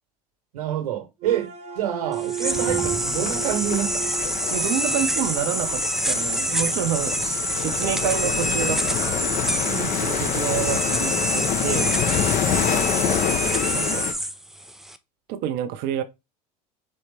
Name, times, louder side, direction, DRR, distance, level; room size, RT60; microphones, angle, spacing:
voice 1, 0.5-1.5 1.7-4.1 9.6-10.1 12.5-12.9, right 10 dB, 80° right, 1.2 m, -28 dB
sound 1, 1.2-5.5, right 11 dB, 35° right, 0.9 m, -33 dB
sound 2, 2.1-15.0, right 1 dB, ahead, 0.4 m, -26 dB
sound 3, 2.5-14.1, left 9 dB, 45° left, 0.8 m, -27 dB
voice 2, 4.5-9.2 10.0-11.9 12.9-14.0 15.3-16.0, right 10 dB, 60° right, 0.7 m, -29 dB
4.3 x 3.1 x 3.3 m
hypercardioid pair, 80°, 19 cm